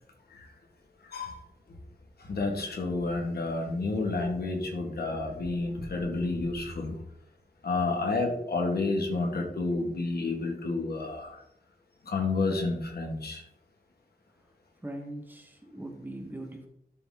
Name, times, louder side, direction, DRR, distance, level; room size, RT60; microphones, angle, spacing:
voice 1, 1.1-1.4 2.2-7.0 7.6-11.4 12.1-13.4, left 3 dB, 85° left, 2 dB, 1.7 m, -30 dB
voice 2, 14.8-16.7, right 1 dB, 10° right, 3 dB, 1.4 m, -40 dB
12.0 x 4.1 x 3.7 m, 0.76 s
wide cardioid pair, 130°, 16 cm